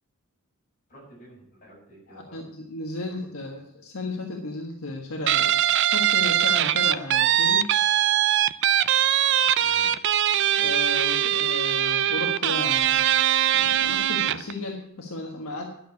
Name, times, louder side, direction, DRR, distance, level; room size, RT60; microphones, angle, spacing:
voice 1, 0.9-2.5 3.1-3.2 9.6-10.0, right 1 dB, 40° left, -4 dB, 6.9 m, -49 dB
voice 2, 2.1-5.6 5.9-7.7 10.6-13.0 13.5-15.7, left 2 dB, 70° left, 1 dB, 1.4 m, -34 dB
Guitar, 5.3-14.5, right 10 dB, 55° right, 0.5 m, -22 dB
11.5 x 6.8 x 9.6 m, 0.78 s
head